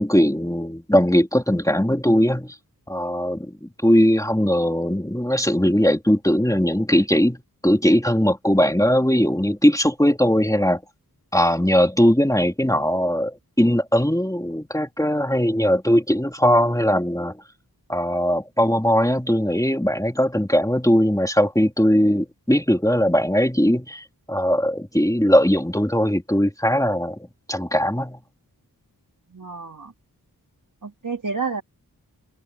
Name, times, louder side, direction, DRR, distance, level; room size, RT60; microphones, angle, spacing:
voice 1, 0.0-2.6 2.9-10.8 11.3-17.3 17.9-27.2 27.5-28.2, equal, 10° left, 3.0 m, -20 dB
voice 2, 29.3-29.9 30.8-31.6, right 5 dB, 55° right, 3.2 m, -29 dB
cardioid pair, 40°, 37 cm